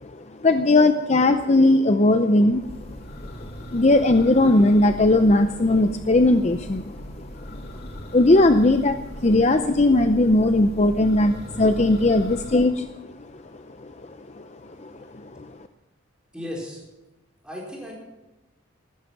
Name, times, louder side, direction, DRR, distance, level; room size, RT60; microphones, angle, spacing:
voice 1, 0.0-3.0 3.4-7.6 8.0-12.9 13.3-13.9 14.3-14.5 14.8-15.5, left 2 dB, 35° left, 8 dB, 0.6 m, -19 dB
Church bell, 2.4-12.7, equal, 50° left, 2.7 m, -39 dB
voice 2, 16.3-16.8 17.4-17.9, left 1 dB, 5° right, -4 dB, 4.7 m, -35 dB
15.0 x 13.0 x 5.9 m, 1.0 s
head